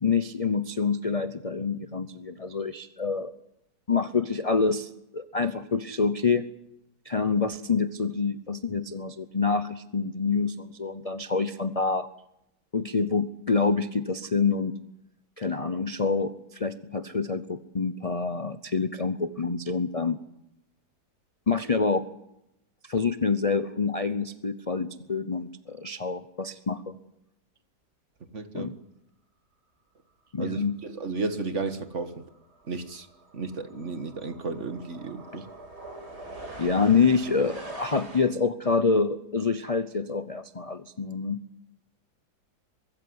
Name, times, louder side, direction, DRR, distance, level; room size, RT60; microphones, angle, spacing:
voice 1, 0.0-3.3 3.9-6.5 7.0-12.1 12.7-14.8 15.4-20.2 21.5-22.1 22.8-27.0 28.5-28.7 30.3-30.8 35.3-35.4 36.6-41.4, left 4 dB, 35° left, 0.5 m, -27 dB
voice 2, 28.3-28.8 30.4-32.3 32.7-33.1 33.3-35.5, right 3 dB, 45° right, 1.7 m, -33 dB
sound 1, 31.4-31.6 31.9-38.2, right 2 dB, 70° right, 5.6 m, -44 dB
23.5 x 14.0 x 9.7 m
omnidirectional pair, 1.8 m